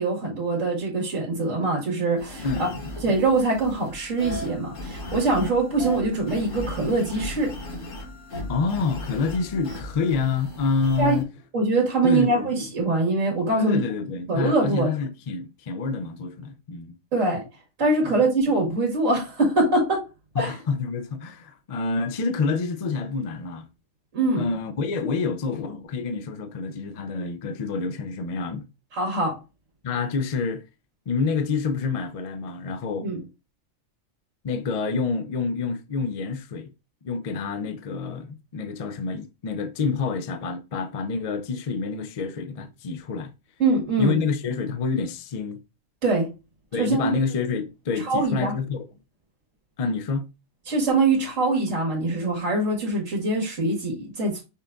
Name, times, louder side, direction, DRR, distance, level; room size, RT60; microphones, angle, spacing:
voice 1, 0.0-2.7 3.0-7.5 11.0-11.2 11.5-13.8 14.3-14.9 17.1-17.4 17.8-20.0 20.4-20.6 24.1-24.5 28.9-29.3 33.0-33.2 43.6-44.2 46.0-46.3 46.8-47.1 48.0-48.6 50.7-54.4, right 2 dB, 80° right, 2.0 m, -23 dB
sound 1, 2.2-11.2, left 1 dB, 80° left, 1.6 m, -36 dB
voice 2, 2.4-3.0 8.5-11.3 12.0-12.6 13.6-16.9 18.0-18.1 20.4-23.7 24.4-28.7 29.8-30.6 31.1-33.1 34.4-36.7 37.0-43.3 44.0-45.6 46.7-48.8 49.8-50.2, left 4 dB, 55° left, 0.4 m, -27 dB
5.6 x 2.5 x 3.4 m
omnidirectional pair, 1.3 m